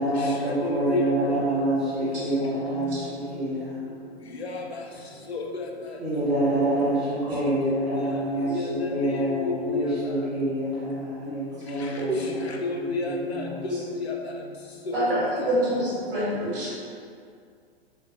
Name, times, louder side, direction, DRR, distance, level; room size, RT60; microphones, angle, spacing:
voice 1, 0.0-3.8 6.0-12.5 12.7-13.6, right 1 dB, ahead, -13 dB, 0.9 m, -27 dB
voice 2, 0.6-1.4 4.4-4.6 5.3-5.6 7.9-9.8 11.3-11.4 12.5-14.2 14.9-15.1, left 3 dB, 80° left, 1 dB, 0.5 m, -30 dB
voice 3, 12.0-12.3 14.9-16.7, right 1 dB, 60° right, -9 dB, 1.3 m, -27 dB
3.2 x 2.1 x 2.5 m, 2.2 s
figure-of-eight pair, 105°, 31 cm